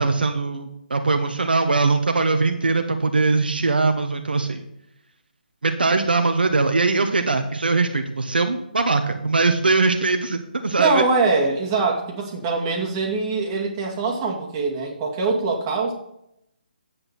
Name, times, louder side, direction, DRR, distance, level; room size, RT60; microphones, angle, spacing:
voice 1, 0.0-4.6 5.6-11.0, right 3 dB, 75° right, 5 dB, 1.2 m, -21 dB
voice 2, 10.8-15.9, right 3 dB, 25° right, -1 dB, 2.3 m, -23 dB
10.5 x 8.5 x 4.3 m, 0.78 s
figure-of-eight pair, 145°, 5 cm